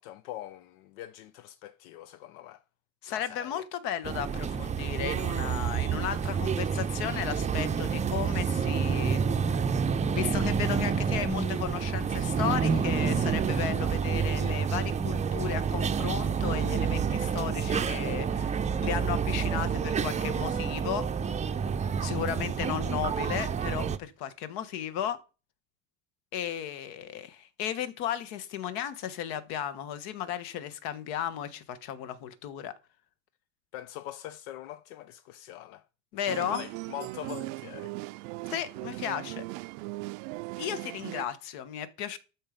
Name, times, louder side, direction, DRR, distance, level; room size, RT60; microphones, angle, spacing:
voice 1, 0.0-2.6 3.1-3.7 33.7-35.8 36.3-37.9, left 13 dB, 90° left, 0.7 m, -43 dB
voice 2, 3.0-9.7 10.1-21.1 22.0-25.2 26.3-32.7 36.1-36.7 38.5-39.4 40.6-42.2, left 10 dB, 70° left, 1.4 m, -35 dB
sound 1, 4.0-24.0, right 6 dB, 20° right, 0.5 m, -28 dB
sound 2, 36.3-41.3, right 22 dB, 90° right, 0.5 m, -39 dB
12.5 x 4.6 x 5.1 m
cardioid pair, 125°, 39 cm